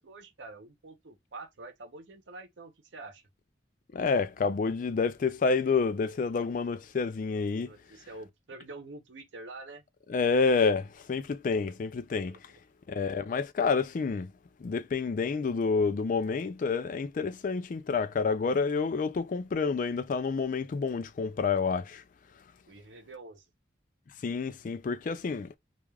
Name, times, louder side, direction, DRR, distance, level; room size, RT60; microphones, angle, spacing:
voice 1, 0.0-3.2 7.6-9.9 12.3-12.4 22.7-23.5, right 2 dB, 85° right, 0.8 m, -46 dB
voice 2, 3.9-7.7 10.1-12.4 12.9-14.3 14.6-22.0 24.2-25.6, left 4 dB, 45° left, 0.3 m, -28 dB
3.1 x 2.4 x 2.3 m
head